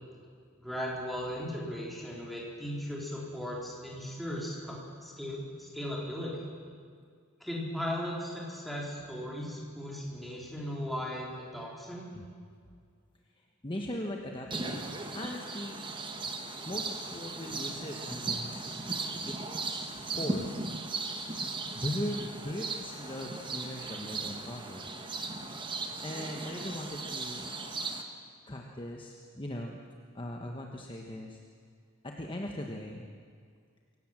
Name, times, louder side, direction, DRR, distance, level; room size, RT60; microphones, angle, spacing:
voice 1, 0.6-6.5 7.4-12.0, equal, ahead, -4 dB, 4.2 m, -37 dB
voice 2, 13.4-14.8 15.1-15.8 16.7-18.8 19.3-20.6 21.7-25.1 26.0-27.6 28.5-29.8 30.1-31.4 32.0-33.1, left 1 dB, 25° left, 1 dB, 1.2 m, -39 dB
sound 1, 14.5-28.0, right 3 dB, 20° right, 1.4 m, -37 dB
24.5 x 17.0 x 7.5 m, 2.1 s
head